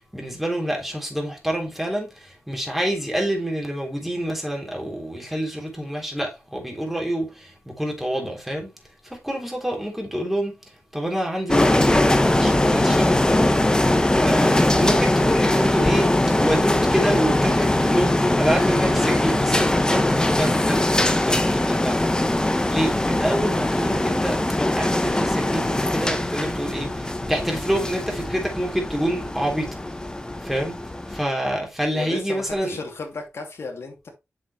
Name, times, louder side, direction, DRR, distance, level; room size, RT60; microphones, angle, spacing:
voice 1, 0.1-8.7 9.1-10.6 10.9-13.6 14.2-16.1 16.4-20.8 21.3-22.0 22.7-29.7 30.4-30.8 31.1-32.8, right 1 dB, 5° right, 3.4 m, -27 dB
sound 1, 11.5-31.2, left 1 dB, 15° left, 1.0 m, -21 dB
voice 2, 31.9-34.1, left 3 dB, 65° left, 2.7 m, -34 dB
7.7 x 6.3 x 3.2 m
wide cardioid pair, 85°, 5 cm